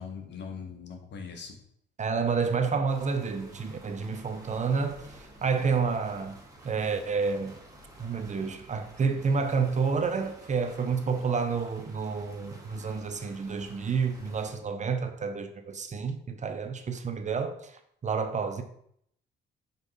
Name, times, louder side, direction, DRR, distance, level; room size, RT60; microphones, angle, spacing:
voice 1, 0.0-1.6, left 6 dB, 60° left, 1.3 m, -40 dB
voice 2, 2.0-7.6 8.0-17.7 18.0-18.6, right 5 dB, 35° right, 0.7 m, -29 dB
sound 1, 2.9-14.6, right 1 dB, 15° right, 1.7 m, -51 dB
5.4 x 4.5 x 4.0 m
cardioid pair, 90°, 20 cm